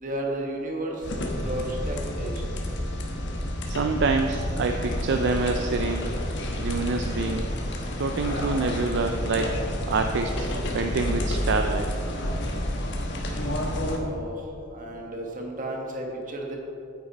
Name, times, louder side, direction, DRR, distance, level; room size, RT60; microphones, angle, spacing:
voice 1, 0.0-2.4 14.0-14.4 14.7-16.6, right 1 dB, 40° right, 0 dB, 1.4 m, -33 dB
sound 1, 1.0-14.0, left 1 dB, 60° left, 1.2 m, -29 dB
voice 2, 3.7-6.1 6.6-7.5 8.0-9.6 9.9-10.5 10.7-11.9, right 3 dB, 60° right, 5 dB, 0.4 m, -26 dB
8.9 x 8.6 x 4.1 m, 2.6 s
head